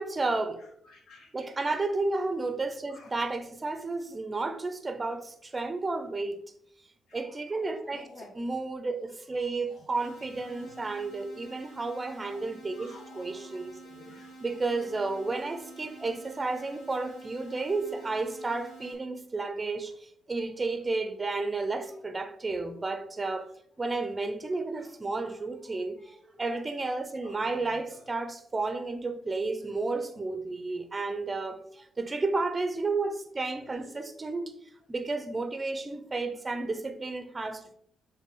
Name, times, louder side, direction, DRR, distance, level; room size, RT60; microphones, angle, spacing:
voice 1, 0.0-0.6 1.3-6.4 7.1-8.0 8.4-13.8 14.4-23.5 23.8-34.5 34.9-37.7, right 3 dB, 25° right, 0.8 m, -32 dB
voice 2, 0.6-1.8 2.9-3.2 3.5-3.6 7.1-8.5 9.1-10.1 10.6-11.0 12.3-12.4 12.8-14.9 16.0-16.1 17.2-17.6 18.1-18.3 19.9-20.0 21.8-22.0 23.3-23.4 24.7-24.9 25.2-26.6 27.2-28.1 29.6-29.8 33.5-34.5 36.5-36.8, left 2 dB, 65° left, 1.9 m, -55 dB
sound 1, 9.9-18.9, right 2 dB, 85° left, 2.2 m, -49 dB
7.3 x 3.5 x 3.8 m
cardioid pair, 90°, 0 cm